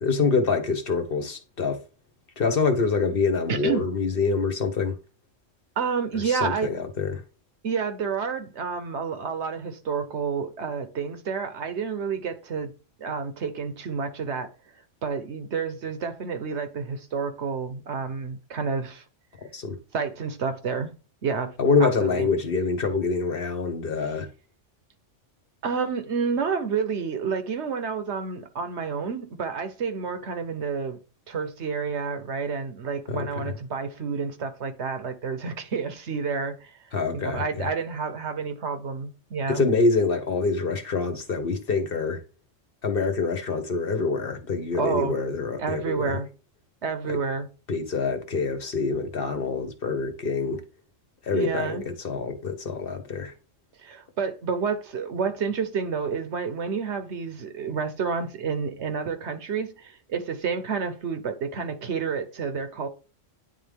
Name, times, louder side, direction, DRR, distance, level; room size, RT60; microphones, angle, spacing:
voice 1, 0.0-1.8 2.4-5.0 6.2-7.2 19.5-19.8 21.6-24.3 33.1-33.3 36.9-37.7 39.5-42.2 42.8-46.2 47.7-50.6 51.2-53.3, left 4 dB, 50° left, 1.1 m, -25 dB
voice 2, 3.5-3.9 5.8-6.7 7.6-12.7 13.0-14.5 15.0-19.0 19.9-20.9 21.2-21.5 21.8-22.3 25.6-31.0 31.3-36.8 37.1-39.6 44.8-45.2 45.6-46.3 46.8-47.5 51.3-51.8 53.8-62.9, right 5 dB, 65° right, 1.2 m, -29 dB
9.5 x 3.6 x 3.5 m
omnidirectional pair, 1.3 m